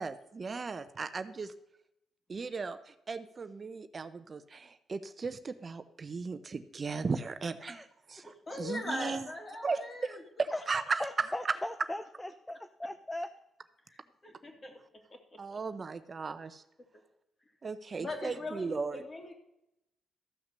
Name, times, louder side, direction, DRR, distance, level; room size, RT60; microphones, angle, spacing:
voice 1, 0.0-1.5 2.3-8.3 8.6-9.3 9.6-11.5 15.4-16.6 17.6-19.0, right 4 dB, 40° right, 11 dB, 0.7 m, -36 dB
voice 2, 8.2-10.2 10.5-10.7 13.9-14.8 15.1-15.6 17.9-19.3, left 2 dB, 35° left, 2 dB, 3.0 m, -41 dB
voice 3, 11.0-13.3, left 1 dB, 15° left, 10 dB, 0.6 m, -38 dB
14.0 x 5.8 x 6.8 m, 0.84 s
supercardioid pair, 65°, 0 cm